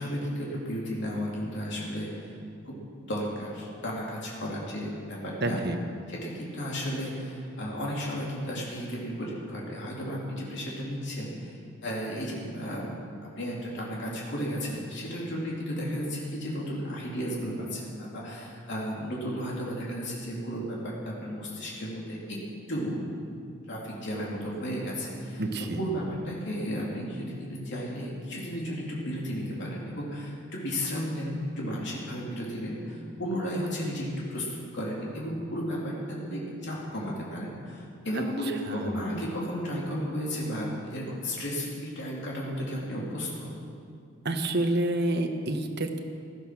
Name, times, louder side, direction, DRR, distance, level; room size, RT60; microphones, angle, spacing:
voice 1, 0.0-2.3 2.6-2.8 3.1-5.6 6.1-22.4 22.7-23.0 23.7-25.4 25.8-43.5, equal, 60° left, -4 dB, 3.2 m, -34 dB
voice 2, 5.4-5.8 25.4-25.9 38.7-38.9 44.2-46.0, right 1 dB, 55° right, 5 dB, 1.2 m, -28 dB
16.0 x 12.0 x 6.1 m, 2.4 s
head